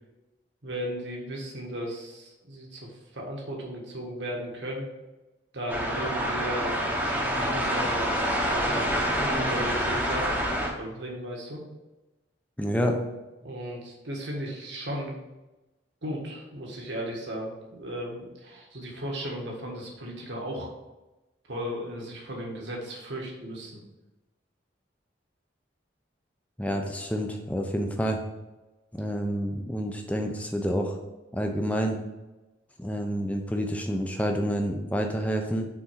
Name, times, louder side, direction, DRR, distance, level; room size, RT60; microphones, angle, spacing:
voice 1, 0.6-4.9 5.5-8.2 8.5-10.5 10.8-11.6 13.4-15.2 16.0-20.7 21.5-23.8, equal, 70° right, -1 dB, 1.7 m, -36 dB
sound 1, 5.7-10.7, equal, 10° right, 1.0 m, -27 dB
voice 2, 12.6-13.0 26.6-28.2 28.9-31.0 31.3-32.0 32.8-35.7, equal, 5° left, 3 dB, 0.7 m, -28 dB
6.2 x 4.3 x 5.8 m, 1.1 s
head